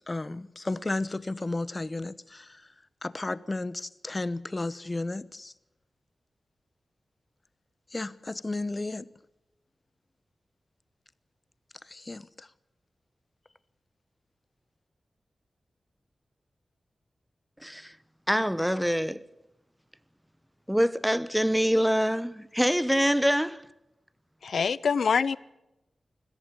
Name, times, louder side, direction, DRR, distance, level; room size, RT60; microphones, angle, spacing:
voice 1, 0.1-2.7 3.0-5.5 7.9-9.1 11.9-12.5, left 2 dB, 30° left, 0.9 m, -33 dB
voice 2, 17.6-17.9 18.3-19.2 20.7-23.6, equal, ahead, 0.9 m, -25 dB
voice 3, 24.4-25.4, left 6 dB, 80° left, 0.6 m, -25 dB
21.5 x 15.0 x 8.3 m
wide cardioid pair, 100°, 0 cm